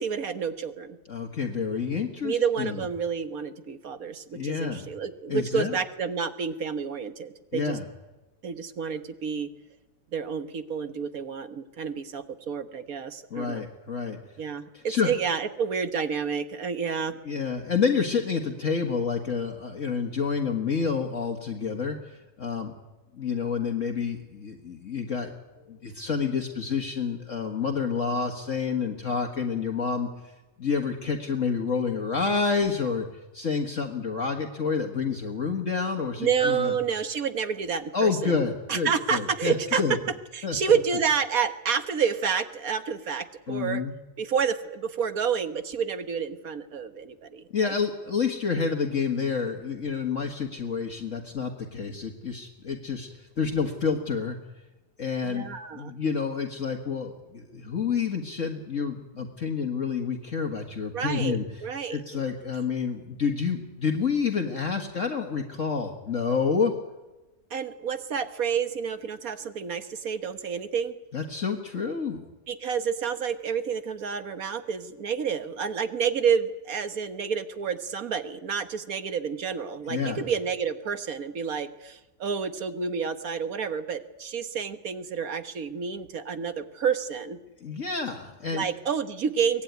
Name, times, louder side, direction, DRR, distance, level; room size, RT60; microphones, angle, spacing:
voice 1, 0.0-1.0 2.2-7.8 8.4-9.5 10.1-13.6 14.4-17.2 36.2-38.4 38.7-40.0 40.3-43.8 44.2-47.7 55.2-55.9 60.9-62.0 67.5-71.0 72.5-87.4 88.5-89.6, right 6 dB, 65° right, 10 dB, 1.7 m, -29 dB
voice 2, 1.1-2.8 4.3-4.8 5.3-5.8 7.5-7.9 13.3-14.2 14.7-15.1 17.3-22.0 22.4-22.7 23.1-25.3 25.7-30.1 30.6-33.1 33.3-36.7 37.9-40.0 40.4-40.8 43.5-43.9 47.5-53.1 53.4-54.4 55.0-55.5 55.7-61.4 61.9-66.7 71.1-72.3 79.9-80.3 87.6-88.7, left 5 dB, 50° left, 3 dB, 2.0 m, -28 dB
23.5 x 18.5 x 9.4 m, 1.1 s
omnidirectional pair, 1.7 m